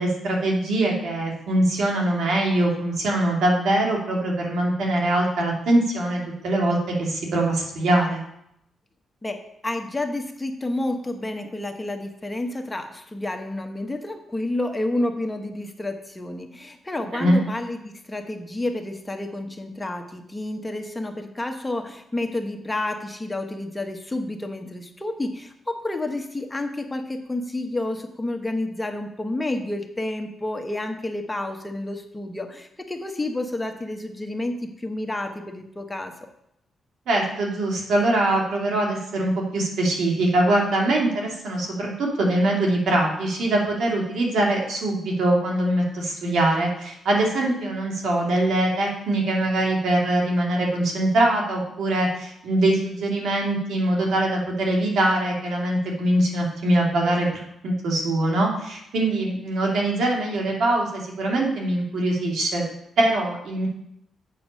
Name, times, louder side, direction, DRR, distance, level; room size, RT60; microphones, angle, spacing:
voice 1, 0.0-8.2 17.1-17.4 37.1-62.6 63.0-63.7, right 1 dB, 80° right, -1 dB, 2.3 m, -23 dB
voice 2, 9.2-36.1, left 2 dB, 15° left, 5 dB, 0.9 m, -30 dB
7.8 x 5.9 x 5.3 m, 0.77 s
cardioid pair, 95°, 0 cm